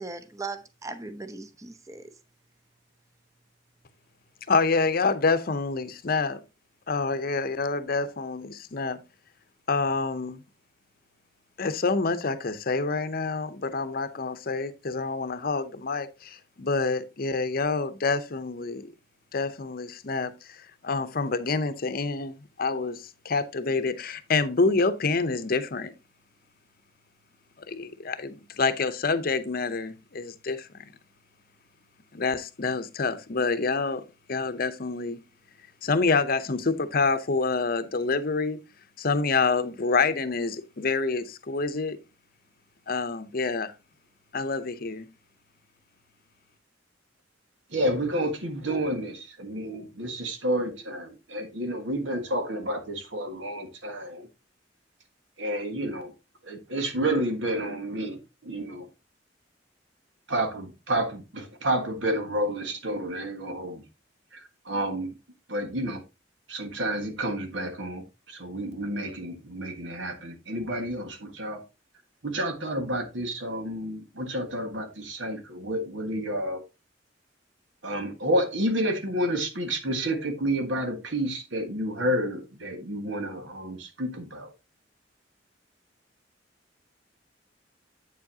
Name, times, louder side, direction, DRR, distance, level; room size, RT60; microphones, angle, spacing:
voice 1, 0.0-2.0, right 3 dB, 15° right, 0.7 m, -38 dB
voice 2, 4.5-6.4 6.9-9.0 9.7-10.4 11.6-18.9 19.3-20.6 20.8-22.3 22.6-25.9 27.7-30.8 32.1-34.0 34.3-35.2 35.8-38.6 39.0-42.0 42.9-43.7 44.3-45.1, left 4 dB, 50° left, 0.7 m, -27 dB
voice 3, 47.7-54.3 55.4-56.1 56.4-58.9 60.3-63.8 64.3-64.4 64.6-65.1 65.5-66.0 66.5-71.6 72.2-76.6 77.8-84.5, right 1 dB, 90° right, 1.6 m, -30 dB
8.3 x 7.2 x 2.8 m
head